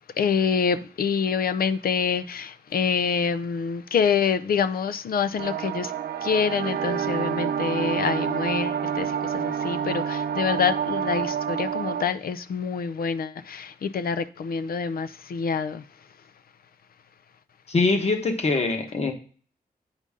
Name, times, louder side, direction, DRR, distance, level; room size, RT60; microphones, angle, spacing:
voice 1, 0.2-5.9 6.2-15.8, left 6 dB, 75° left, 0.5 m, -26 dB
sound 1, 5.4-12.0, right 8 dB, 80° right, 0.5 m, -28 dB
voice 2, 17.7-19.1, left 3 dB, 45° left, 1.3 m, -23 dB
8.9 x 5.3 x 3.7 m
wide cardioid pair, 170°, 15 cm